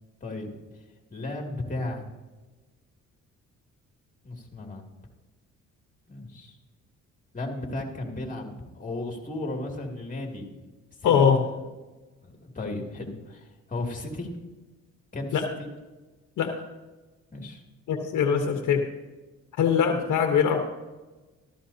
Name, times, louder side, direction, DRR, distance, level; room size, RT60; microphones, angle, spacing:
voice 1, 1.1-2.0 4.2-4.8 6.1-6.6 7.3-10.5 11.0-11.5 12.2-14.3 15.1-15.7 17.3-17.6, left 2 dB, 25° left, 1 dB, 2.6 m, -35 dB
voice 2, 11.0-11.4 15.3-15.4 16.4-16.5 17.9-18.8 19.6-20.6, left 7 dB, 75° left, 4 dB, 1.1 m, -22 dB
14.0 x 13.5 x 2.8 m, 1.2 s
cardioid pair, 90°, 30 cm